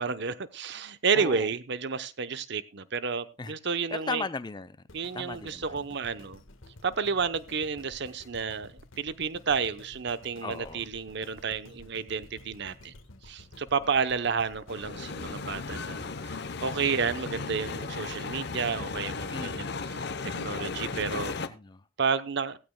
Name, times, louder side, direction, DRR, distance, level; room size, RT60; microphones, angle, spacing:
voice 1, 0.0-4.2 4.9-6.4 6.8-12.9 13.2-19.7 20.2-21.3 22.0-22.6, right 5 dB, 60° right, 12 dB, 0.8 m, -31 dB
voice 2, 1.1-1.5 3.4-3.5 3.9-4.8 5.1-5.8 10.4-10.8 19.3-19.8 20.9-21.8, left 3 dB, 20° left, 13 dB, 0.5 m, -37 dB
sound 1, 4.9-17.1 17.6-17.7, left 1 dB, 85° left, 1.5 m, -52 dB
sound 2, 14.7-21.5, left 4 dB, 55° left, 0.8 m, -36 dB
16.0 x 15.5 x 2.2 m, 0.27 s
head